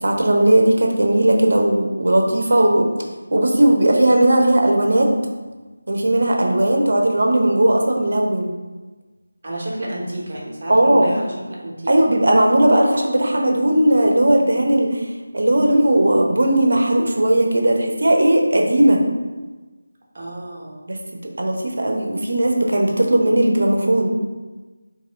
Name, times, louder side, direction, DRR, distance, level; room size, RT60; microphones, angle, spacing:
voice 1, 0.0-2.9 3.3-5.1 5.9-8.5 10.7-11.1 11.9-15.0 15.3-19.0 20.9-21.0 21.4-24.1, right 1 dB, 65° right, 1 dB, 0.7 m, -17 dB
voice 2, 9.4-11.9 20.1-20.8, right 1 dB, 40° right, -4 dB, 1.0 m, -30 dB
3.4 x 2.9 x 3.6 m, 1.3 s
figure-of-eight pair, 165°, 0 cm